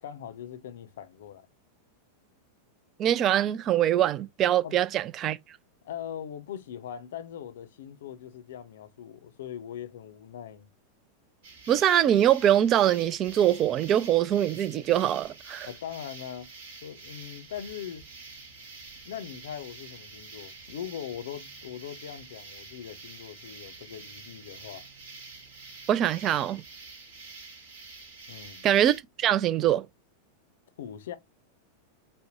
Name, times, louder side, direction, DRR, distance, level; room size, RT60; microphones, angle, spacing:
voice 1, 0.0-1.5 4.6-4.8 5.8-10.7 15.6-16.5 16.8-18.0 19.0-24.9 28.3-28.7 30.8-31.2, left 9 dB, 60° left, 0.5 m, -41 dB
voice 2, 3.0-5.4 11.7-15.7 25.9-26.6 28.6-29.9, right 11 dB, 30° right, 0.3 m, -23 dB
sound 1, 11.4-29.0, right 3 dB, 50° right, 1.2 m, -47 dB
5.1 x 2.1 x 2.7 m
figure-of-eight pair, 90°, 0 cm